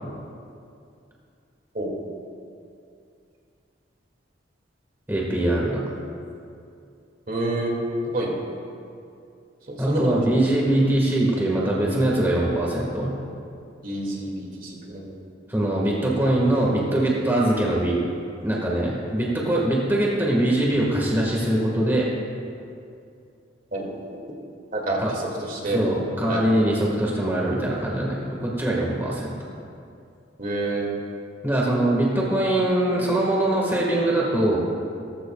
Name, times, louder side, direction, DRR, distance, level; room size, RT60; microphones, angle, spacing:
voice 1, 5.1-5.8 9.8-13.1 15.5-18.0 18.4-22.1 25.0-25.1 25.6-29.3 31.4-34.6, right 1 dB, 10° right, -4 dB, 1.6 m, -22 dB
voice 2, 7.3-7.8 8.1-8.4 9.7-10.3 13.8-15.1 23.7-23.8 24.7-25.8 26.2-26.4 30.4-30.9, right 2 dB, 45° right, -2 dB, 2.2 m, -28 dB
18.0 x 14.5 x 2.3 m, 2.5 s
head